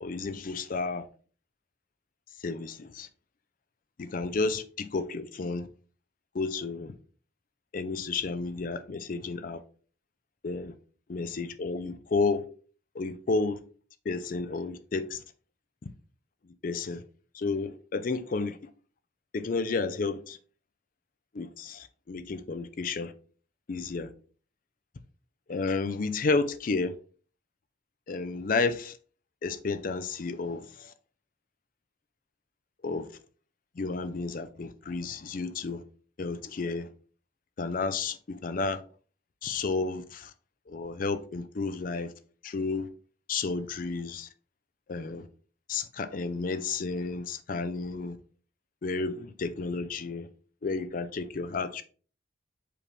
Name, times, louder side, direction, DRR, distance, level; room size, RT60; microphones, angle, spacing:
voice 1, 0.0-1.0 2.4-3.1 4.0-5.7 6.3-6.9 7.7-9.6 10.4-10.7 11.1-12.4 13.0-13.6 14.1-15.2 16.6-17.0 17.3-18.6 19.3-20.4 21.3-23.1 23.7-24.1 25.5-26.9 28.1-28.9 29.4-30.9 32.8-33.1 33.8-35.8 36.2-36.9 37.6-38.8 39.4-40.3 40.7-42.1 42.4-42.9 43.3-44.3 44.9-45.3 45.7-48.2 48.8-50.3 50.6-51.8, left 4 dB, 45° left, 0.4 m, -31 dB
4.8 x 3.4 x 3.2 m
head